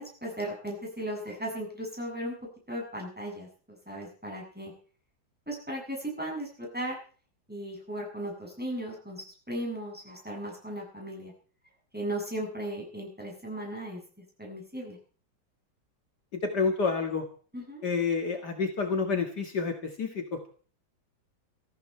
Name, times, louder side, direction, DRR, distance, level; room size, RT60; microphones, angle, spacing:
voice 1, 0.0-2.3 2.7-4.7 5.5-7.0 7.5-11.3 11.9-14.0 14.4-15.0 17.5-17.9, right 1 dB, 5° right, -1 dB, 7.4 m, -36 dB
voice 2, 16.3-17.2 17.8-20.5, left 4 dB, 60° left, 3 dB, 2.5 m, -29 dB
20.5 x 14.5 x 4.5 m, 0.41 s
omnidirectional pair, 2.1 m